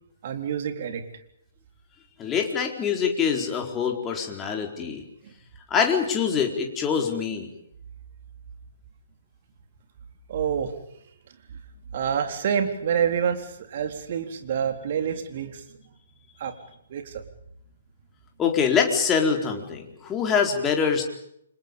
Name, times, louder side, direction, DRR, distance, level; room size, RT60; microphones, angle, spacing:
voice 1, 0.2-1.0 5.2-5.3 10.3-10.7 11.5-11.6 11.9-15.6 16.4-16.5 16.9-17.2, right 8 dB, 45° right, 6 dB, 3.9 m, -27 dB
voice 2, 2.2-5.0 5.7-7.5 18.4-21.0, left 6 dB, 15° left, 2 dB, 4.5 m, -24 dB
30.0 x 26.0 x 5.5 m, 0.74 s
figure-of-eight pair, 130°, 0 cm